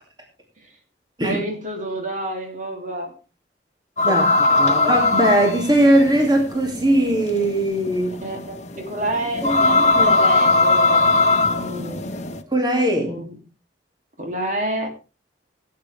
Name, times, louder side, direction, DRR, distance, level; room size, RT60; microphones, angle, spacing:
voice 1, 1.2-3.1 4.0-4.2 4.5-5.0 8.2-11.1 11.4-12.1 13.0-13.4 14.2-14.9, right 1 dB, 45° right, 3 dB, 2.7 m, -29 dB
sound 1, 4.0-12.4, left 3 dB, 40° left, 1.1 m, -19 dB
voice 2, 4.0-8.2 9.4-10.1 12.5-13.1, right 1 dB, 25° right, 2 dB, 2.5 m, -20 dB
17.5 x 9.3 x 3.4 m, 0.31 s
head